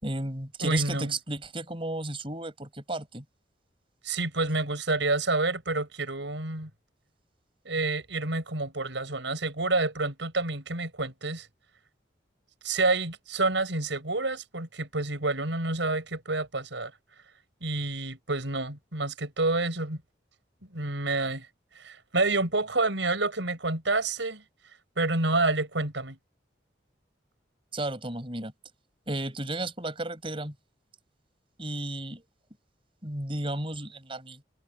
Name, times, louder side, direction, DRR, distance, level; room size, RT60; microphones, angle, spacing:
voice 1, 0.0-3.2 27.7-28.5 29.1-30.5 31.6-32.2 33.0-34.4, right 2 dB, 30° right, 4.9 m, -33 dB
voice 2, 0.6-1.1 4.0-6.7 7.7-11.5 12.6-16.9 17.6-20.0 20.7-21.5 21.8-24.4 25.0-26.2, right 2 dB, 85° right, 5.6 m, -28 dB
head